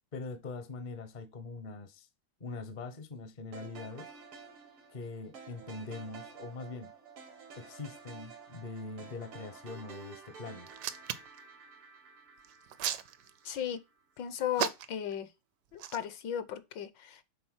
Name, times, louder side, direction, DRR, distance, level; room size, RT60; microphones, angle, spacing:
voice 1, 0.1-2.1 2.4-4.1 4.9-6.9 7.6-10.7, left 3 dB, 40° left, 0.6 m, -42 dB
sound 1, 3.5-13.8, right 5 dB, 90° right, 2.7 m, -51 dB
Hands, 10.7-11.4 12.4-13.6 14.6-15.1 15.7-16.0, right 10 dB, 65° right, 1.1 m, -34 dB
voice 2, 13.4-13.8 14.2-15.3 15.7-17.2, left 9 dB, 65° left, 1.3 m, -36 dB
8.6 x 3.9 x 6.3 m
omnidirectional pair, 2.3 m